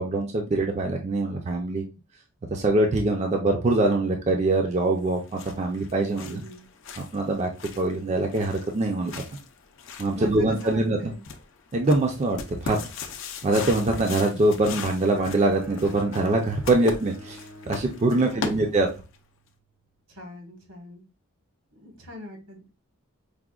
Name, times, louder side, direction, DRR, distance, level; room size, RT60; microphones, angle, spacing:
voice 1, 0.0-1.8 2.5-6.4 7.0-7.5 7.8-9.2 10.0-11.1 11.7-12.8 13.4-18.9, right 2 dB, 30° right, 2 dB, 0.3 m, -24 dB
sound 1, 5.0-19.2, left 5 dB, 60° left, 0.4 m, -40 dB
voice 2, 6.1-6.6 10.1-11.2 17.9-18.9 20.1-21.0 21.7-22.7, left 1 dB, 85° right, 1 dB, 1.2 m, -42 dB
Bowed string instrument, 15.0-19.2, equal, 70° right, 0.7 m, -47 dB
4.7 x 2.1 x 2.3 m, 0.30 s
head